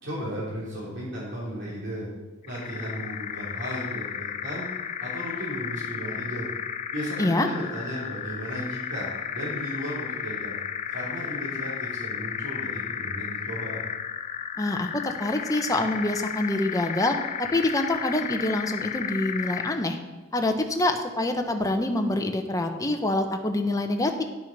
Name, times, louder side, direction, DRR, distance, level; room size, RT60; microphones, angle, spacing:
voice 1, 0.0-2.1 2.5-4.7 5.0-6.5 6.9-10.6 10.9-13.8, equal, 65° right, -7 dB, 3.4 m, -35 dB
sound 1, 2.4-19.9, left 8 dB, 35° left, 0.4 m, -33 dB
voice 2, 14.6-20.0 20.3-24.2, left 1 dB, 20° left, 5 dB, 0.8 m, -26 dB
10.5 x 6.1 x 5.3 m, 1.2 s
head